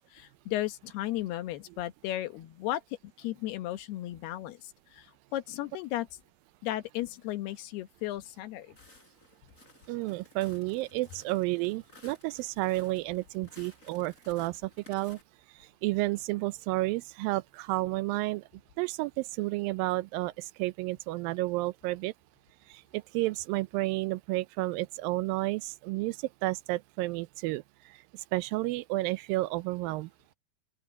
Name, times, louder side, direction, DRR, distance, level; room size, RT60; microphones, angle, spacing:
voice 1, 0.0-2.8 3.2-5.1 5.3-6.1 6.6-8.7, left 14 dB, 80° left, 3.2 m, -35 dB
Walk footsteps, 8.8-15.2, left 2 dB, 20° left, 6.0 m, -57 dB
voice 2, 9.9-15.2 15.6-18.4 18.8-22.1 22.7-27.6 28.3-30.1, right 19 dB, 80° right, 2.1 m, -31 dB
open air
omnidirectional pair, 4.6 m